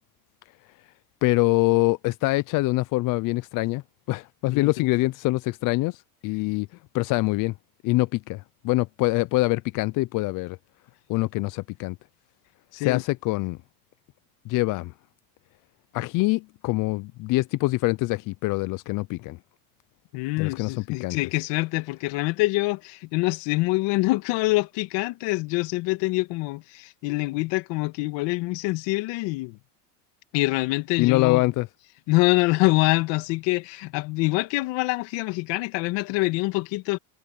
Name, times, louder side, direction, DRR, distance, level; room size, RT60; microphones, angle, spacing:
voice 1, 1.2-3.8 4.1-6.7 6.9-7.5 7.8-10.6 11.1-12.0 12.8-13.6 14.5-14.9 15.9-19.4 20.4-20.7 21.0-21.2 31.0-31.7, left 21 dB, 40° left, 0.5 m, -24 dB
voice 2, 20.1-29.6 30.3-31.5 32.1-37.0, left 22 dB, 60° left, 2.2 m, -25 dB
supercardioid pair, 115°, 49 cm